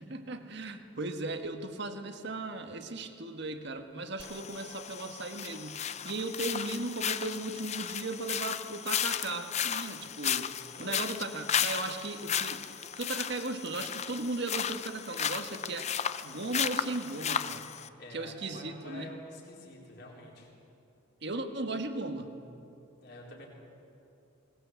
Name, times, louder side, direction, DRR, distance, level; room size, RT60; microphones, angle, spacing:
voice 1, 0.0-10.5 10.8-12.7 12.9-15.9 16.2-17.7 18.1-19.1 21.2-22.3, right 2 dB, 55° right, 6 dB, 1.5 m, -37 dB
sound 1, 4.2-17.9, left 8 dB, 30° left, 0.6 m, -34 dB
voice 2, 10.7-11.3 18.0-20.5 23.0-23.5, left 2 dB, 50° left, -3 dB, 4.1 m, -48 dB
20.5 x 20.0 x 8.2 m, 2.8 s
head